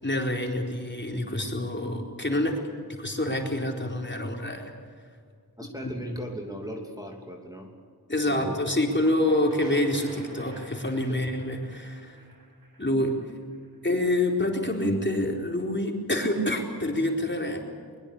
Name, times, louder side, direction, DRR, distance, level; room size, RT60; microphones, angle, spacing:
voice 1, 0.0-2.6 3.0-4.7 5.8-5.9 8.1-12.2 12.8-13.1 13.8-17.6, left 1 dB, 30° left, 1 dB, 4.3 m, -27 dB
voice 2, 5.6-7.7 8.3-8.6 11.1-11.2, equal, 10° right, 1 dB, 2.9 m, -37 dB
sound 1, 8.4-14.0, right 1 dB, 65° right, 6.9 m, -46 dB
22.5 x 22.5 x 8.5 m, 2.1 s
wide cardioid pair, 70°, 38 cm